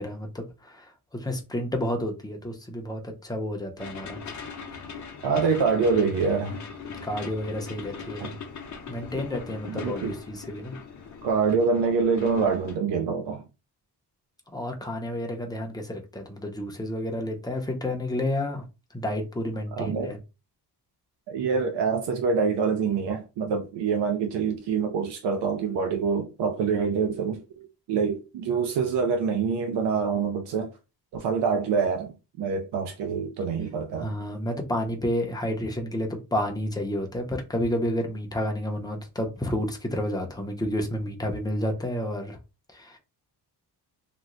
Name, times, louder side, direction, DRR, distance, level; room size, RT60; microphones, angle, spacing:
voice 1, 0.0-4.2 7.0-8.3 8.9-10.8 14.5-18.6 18.9-20.2 34.0-42.4 42.7-43.0, left 1 dB, 10° left, 0.6 m, -30 dB
sound 1, 3.8-12.8, left 5 dB, 45° left, 0.7 m, -40 dB
voice 2, 5.2-6.6 8.2-8.3 9.7-10.1 11.2-13.4 19.7-20.1 21.3-30.7 31.1-34.1, right 5 dB, 85° right, 0.6 m, -26 dB
2.9 x 2.0 x 3.7 m
wide cardioid pair, 130°, 41 cm